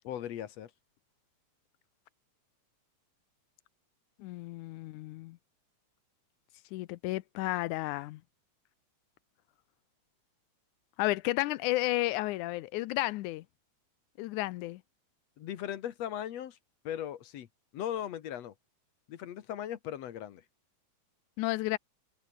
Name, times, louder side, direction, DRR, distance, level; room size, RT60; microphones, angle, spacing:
voice 1, 0.0-0.7 15.4-16.6 16.8-17.5 17.7-18.5 19.1-20.4, left 10 dB, 65° left, 2.2 m, -38 dB
voice 2, 4.2-5.4 6.7-8.2 11.0-13.4 14.2-14.8 21.4-21.8, left 18 dB, 85° left, 2.1 m, -32 dB
omnidirectional pair, 3.5 m